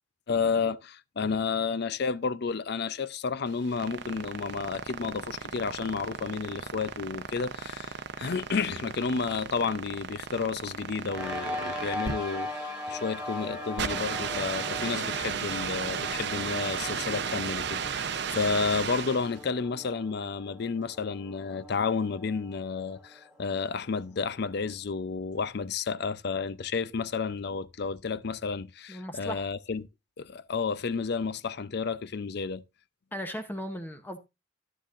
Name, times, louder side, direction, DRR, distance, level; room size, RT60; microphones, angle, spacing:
voice 1, 0.3-29.9 30.2-32.6, left 5 dB, 60° left, 0.5 m, -31 dB
sound 1, 3.5-19.4, right 6 dB, 65° right, 0.7 m, -35 dB
sound 2, 11.1-23.8, left 1 dB, 5° right, 1.8 m, -40 dB
voice 2, 28.9-29.4 33.1-34.2, equal, 10° left, 0.8 m, -37 dB
12.0 x 9.9 x 2.5 m
head